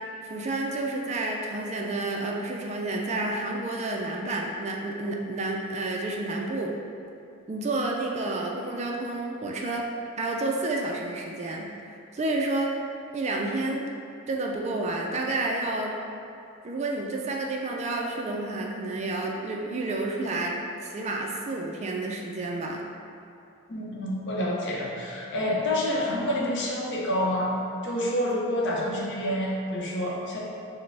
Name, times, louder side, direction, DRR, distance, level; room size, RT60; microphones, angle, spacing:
voice 1, 0.3-6.7 7.5-9.9 10.2-11.7 12.1-12.7 13.1-13.8 14.3-16.0 16.6-20.6 20.8-22.8, right 2 dB, 30° right, 0 dB, 0.3 m, -30 dB
voice 2, 23.7-30.4, left 1 dB, 55° left, -4 dB, 0.7 m, -28 dB
6.2 x 2.1 x 3.3 m, 2.7 s
head